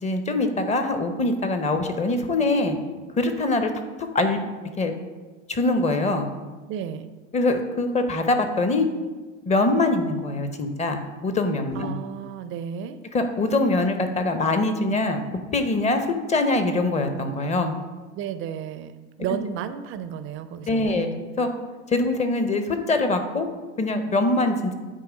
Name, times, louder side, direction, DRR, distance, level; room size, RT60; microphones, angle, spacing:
voice 1, 0.0-2.8 3.2-3.7 4.1-4.4 4.8-4.9 5.5-6.3 7.3-8.9 9.5-11.9 13.1-15.2 15.5-17.7 20.7-21.1 21.4-21.5 21.9-23.5 23.8-24.7, left 2 dB, 20° left, 7 dB, 0.7 m, -23 dB
voice 2, 6.7-7.1 11.7-13.0 18.1-18.9 19.2-21.0, right 8 dB, 35° right, 11 dB, 0.5 m, -32 dB
8.5 x 3.0 x 4.9 m, 1.3 s
hypercardioid pair, 95°, 37 cm